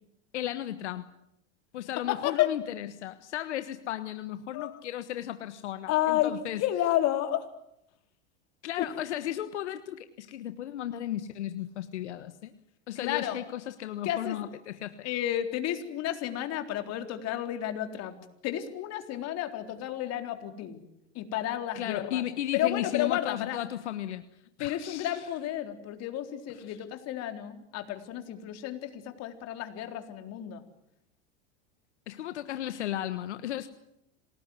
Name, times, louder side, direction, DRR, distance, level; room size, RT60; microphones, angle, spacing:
voice 1, 0.3-1.1 1.7-6.6 8.6-12.5 12.9-15.1 21.7-24.2 24.6-25.3 26.5-26.8 32.1-33.7, left 12 dB, 85° left, 11 dB, 1.4 m, -35 dB
voice 2, 2.1-2.5 4.5-4.8 5.9-7.5 8.8-8.9 13.0-13.4 14.0-14.4 15.0-18.2 18.4-20.8 21.1-22.2 22.5-23.6 24.6-30.6, left 12 dB, 50° left, 6 dB, 4.0 m, -31 dB
27.5 x 19.5 x 9.8 m, 0.79 s
hypercardioid pair, 110°, 34 cm